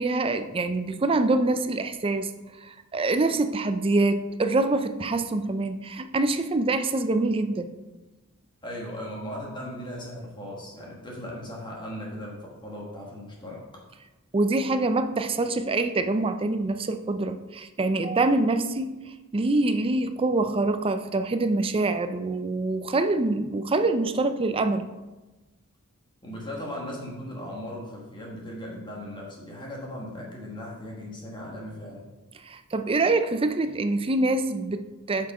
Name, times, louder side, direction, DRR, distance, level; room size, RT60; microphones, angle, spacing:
voice 1, 0.0-2.3 2.6-7.7 14.3-19.0 19.3-24.9 32.5-35.3, right 2 dB, 25° right, 9 dB, 0.4 m, -25 dB
voice 2, 8.6-13.6 26.2-32.1, left 1 dB, 20° left, -3 dB, 1.6 m, -38 dB
7.8 x 5.7 x 4.9 m, 1.1 s
head